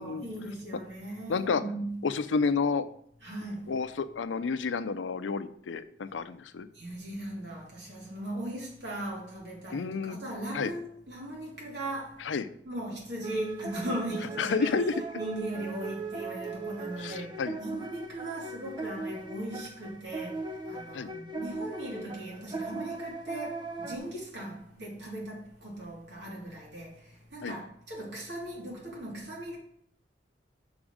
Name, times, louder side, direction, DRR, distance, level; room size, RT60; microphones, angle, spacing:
voice 1, 0.0-2.0 3.2-3.7 6.7-12.3 12.6-14.8 15.1-29.6, right 1 dB, 70° right, 2.8 m, -38 dB
voice 2, 1.3-1.6 2.0-2.9 3.7-6.7 9.7-10.2 10.5-10.7 12.2-12.5 14.4-14.9 17.0-17.6 20.9-21.1 27.4-27.6, left 5 dB, 90° left, 0.5 m, -30 dB
sound 1, 13.2-24.0, right 3 dB, 25° right, 0.7 m, -38 dB
6.2 x 4.9 x 6.3 m
head